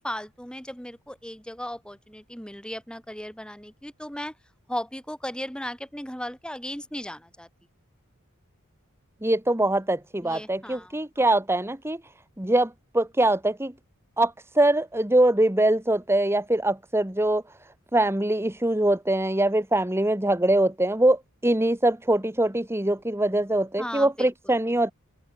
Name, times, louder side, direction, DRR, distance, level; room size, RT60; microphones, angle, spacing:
voice 1, 0.0-4.3 4.7-7.5 10.2-10.9 23.8-24.6, left 1 dB, 5° left, 5.4 m, -36 dB
voice 2, 9.2-12.0 12.4-13.7 14.2-17.4 17.9-24.9, right 1 dB, 10° right, 1.6 m, -23 dB
open air
head